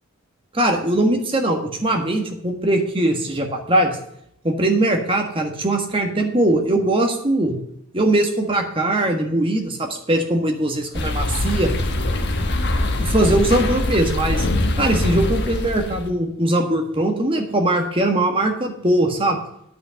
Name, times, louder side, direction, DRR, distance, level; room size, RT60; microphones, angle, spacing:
voice 1, 0.5-4.0 4.4-7.6 7.9-11.8 13.0-14.5 14.8-19.4, right 1 dB, 25° right, 3 dB, 1.5 m, -20 dB
sound 1, 10.9-16.1, left 1 dB, 50° left, 1.3 m, -23 dB
9.5 x 6.0 x 8.1 m, 0.74 s
head